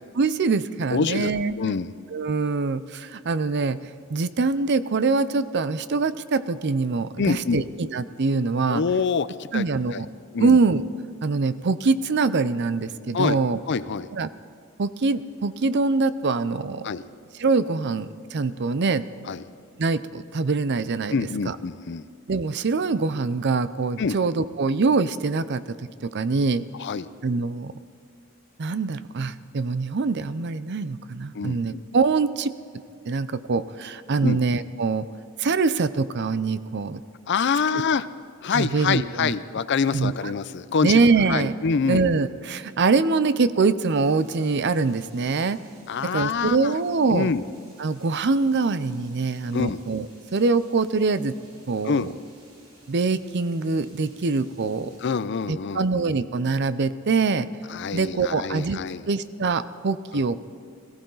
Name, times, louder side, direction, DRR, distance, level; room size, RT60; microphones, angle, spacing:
voice 1, 0.2-1.5 2.1-3.8 4.1-8.8 9.5-10.1 10.4-10.8 11.2-13.6 14.1-14.3 14.8-16.9 17.4-19.0 19.8-21.6 22.3-26.6 27.2-27.7 28.6-32.5 33.1-35.1 35.4-37.0 38.5-39.3 39.9-40.3 40.8-41.6 41.9-45.6 46.1-47.3 47.8-51.3 51.7-52.1 52.9-54.9 55.5-57.5 57.9-58.8 59.1-60.4, right 4 dB, 55° right, 14 dB, 0.5 m, -24 dB
voice 2, 0.9-1.3 1.6-1.9 7.2-7.6 8.7-9.6 9.9-10.0 10.3-10.6 13.1-13.4 13.7-14.1 16.8-17.0 19.3-19.4 21.1-22.1 24.0-24.2 26.8-27.1 31.3-31.8 34.2-34.4 37.3-38.1 38.4-41.0 41.3-42.0 45.9-46.7 47.1-47.4 49.5-49.8 51.8-52.1 55.0-55.8 57.7-59.0 60.1-60.2, left 5 dB, 55° left, 15 dB, 0.5 m, -25 dB
sound 1, 43.8-55.1, right 1 dB, 75° right, 5.3 m, -55 dB
22.0 x 15.5 x 3.9 m, 2.3 s
head